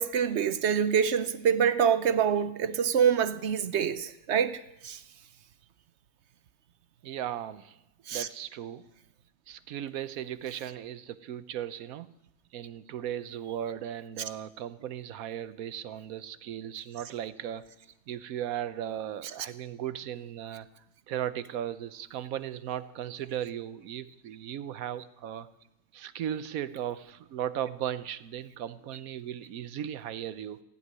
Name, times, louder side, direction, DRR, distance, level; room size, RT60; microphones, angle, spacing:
voice 1, 0.0-4.6 4.8-5.0 8.1-8.3, right 7 dB, 60° right, 0.9 m, -26 dB
voice 2, 7.0-7.8 8.1-8.9 9.5-12.1 12.5-17.7 18.1-20.7 21.1-25.5 25.9-30.6, right 10 dB, 90° right, 1.2 m, -36 dB
15.5 x 8.2 x 9.5 m
omnidirectional pair, 1.5 m